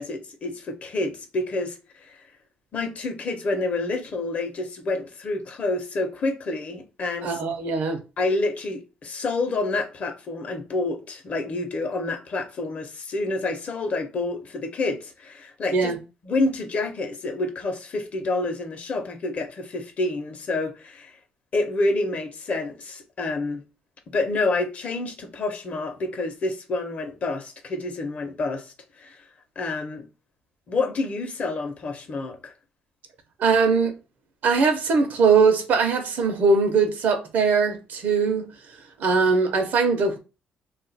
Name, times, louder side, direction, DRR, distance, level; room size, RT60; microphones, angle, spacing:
voice 1, 0.0-2.2 2.7-7.4 8.2-15.9 16.2-21.2 21.5-23.6 24.1-28.7 29.0-29.2 29.6-30.0 30.7-32.5, left 2 dB, 50° left, 0.8 m, -28 dB
voice 2, 7.2-8.0 15.7-16.0 33.4-33.9 34.4-38.5 39.0-40.2, right 4 dB, 65° right, 0.8 m, -21 dB
2.4 x 2.3 x 4.0 m
cardioid pair, 100°, 3 cm